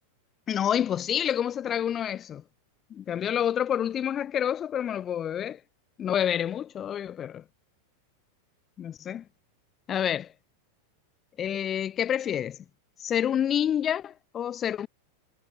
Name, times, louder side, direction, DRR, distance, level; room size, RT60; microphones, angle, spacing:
voice 1, 0.5-2.4 2.9-5.6 6.0-7.4 8.8-9.2 9.9-10.3 11.4-12.6 13.0-14.9, left 9 dB, 25° left, 1.7 m, -28 dB
figure-of-eight pair, 90°, 0 cm